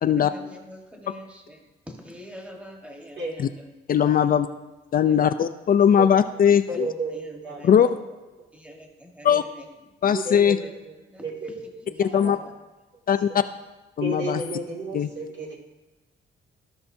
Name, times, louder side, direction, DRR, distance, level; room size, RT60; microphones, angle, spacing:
voice 1, 0.0-3.7 5.0-5.3 6.0-6.1 6.7-7.9 8.5-9.6 10.3-10.7 11.0-11.2 11.8-12.5, equal, 5° right, 1 dB, 1.5 m, -45 dB
voice 2, 3.9-4.5 4.9-6.9 7.6-7.9 9.2-9.4 10.0-10.6 12.0-12.4 13.1-13.4 14.0-14.4 14.9-15.1, left 8 dB, 45° left, 10 dB, 0.4 m, -19 dB
voice 3, 6.7-7.7 9.3-9.4 10.1-11.0 11.2-12.5 13.3-13.4 14.0-15.6, right 3 dB, 65° right, -1 dB, 2.4 m, -33 dB
15.0 x 5.6 x 2.7 m, 1.1 s
cardioid pair, 90°, 20 cm